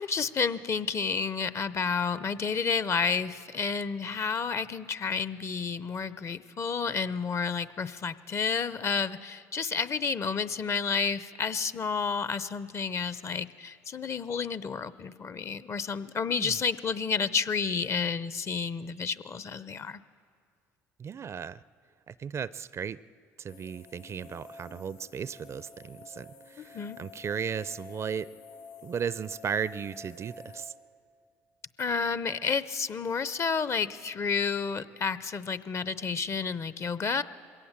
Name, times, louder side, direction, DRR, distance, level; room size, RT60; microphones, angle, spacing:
voice 1, 0.0-20.0 26.6-27.0 31.8-37.2, left 5 dB, 40° left, 16 dB, 0.7 m, -30 dB
voice 2, 21.0-21.6 22.1-23.0 23.4-28.3 28.8-30.7, right 7 dB, 40° right, 18 dB, 0.5 m, -35 dB
sound 1, 23.5-30.7, left 4 dB, 70° left, 5.4 m, -50 dB
21.5 x 17.0 x 7.3 m, 2.2 s
hypercardioid pair, 65°, 7 cm